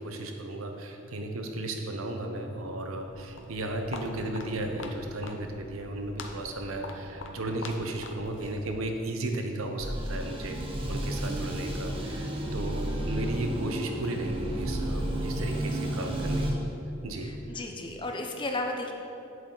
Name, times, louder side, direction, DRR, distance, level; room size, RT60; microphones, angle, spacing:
voice 1, 0.0-10.6 10.9-16.5 17.0-17.3, right 1 dB, 90° right, 4 dB, 0.9 m, -35 dB
Walk footsteps, 3.0-9.1, left 2 dB, 65° left, 0.7 m, -44 dB
sound 1, 9.8-16.5, right 1 dB, 25° right, 1.1 m, -32 dB
voice 2, 17.2-18.9, left 2 dB, 25° left, 2 dB, 0.7 m, -34 dB
8.0 x 7.9 x 3.9 m, 2.7 s
head